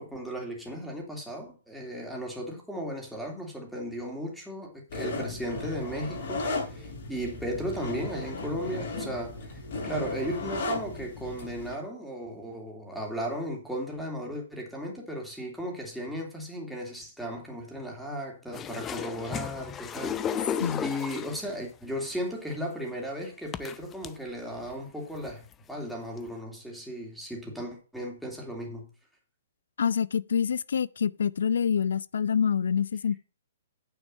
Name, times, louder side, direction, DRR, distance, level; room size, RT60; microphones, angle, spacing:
voice 1, 0.0-28.9, equal, ahead, 3.0 m, -36 dB
sound 1, 4.9-11.7, left 2 dB, 60° left, 6.5 m, -35 dB
sound 2, 18.5-21.5 22.5-22.6 23.5-24.1 24.7-24.8 25.1-25.5 26.3-26.4, left 8 dB, 20° left, 0.5 m, -33 dB
voice 2, 29.8-33.2, left 7 dB, 80° left, 0.5 m, -26 dB
9.5 x 6.3 x 5.5 m
hypercardioid pair, 145°, 0 cm